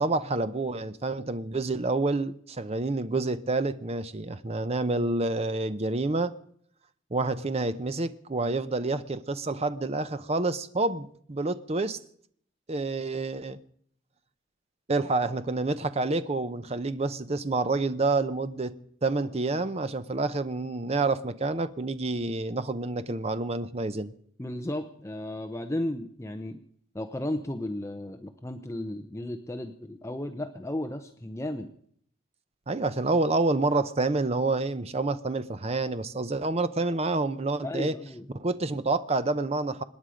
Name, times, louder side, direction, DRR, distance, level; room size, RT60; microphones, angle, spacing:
voice 1, 0.0-6.3 7.1-12.0 12.7-13.6 14.9-18.7 19.0-24.1 32.7-37.9 38.3-39.8, right 3 dB, 30° right, 0.7 m, -28 dB
voice 2, 24.4-26.6 26.9-31.7 37.6-38.2, left 1 dB, 15° left, 0.7 m, -34 dB
26.0 x 10.0 x 5.1 m
head